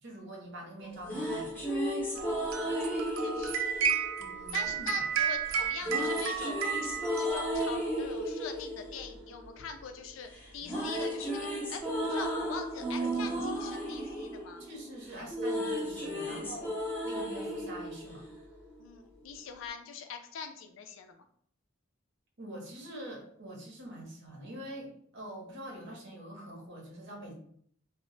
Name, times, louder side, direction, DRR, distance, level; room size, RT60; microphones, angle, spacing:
voice 1, 0.0-1.5 4.2-5.1 13.0-13.4 14.6-16.7 17.0-18.2 22.4-27.3, right 1 dB, 60° right, 0 dB, 0.7 m, -45 dB
sound 1, 0.8-5.0 5.8-10.0 10.3-18.8, equal, 10° left, 0.6 m, -34 dB
sound 2, 2.2-8.0, right 7 dB, 80° right, 0.4 m, -33 dB
voice 2, 2.4-3.5 4.5-6.7 7.1-14.6 16.2-16.4 18.8-21.2, left 6 dB, 70° left, 6 dB, 0.4 m, -43 dB
2.1 x 2.0 x 3.7 m, 0.64 s
head